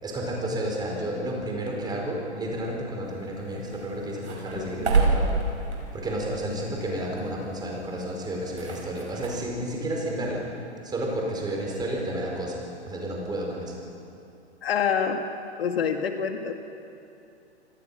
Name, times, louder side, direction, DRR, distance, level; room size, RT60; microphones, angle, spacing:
voice 1, 0.0-5.3 5.9-10.4 10.8-13.7, right 1 dB, 10° right, -1 dB, 4.6 m, -31 dB
sound 1, 3.0-9.3, right 3 dB, 75° right, 5.2 m, -30 dB
voice 2, 4.5-4.9 14.6-15.2 15.6-16.5, left 7 dB, 60° left, 6 dB, 1.7 m, -27 dB
28.0 x 18.5 x 5.6 m, 2.7 s
figure-of-eight pair, 120°, 34 cm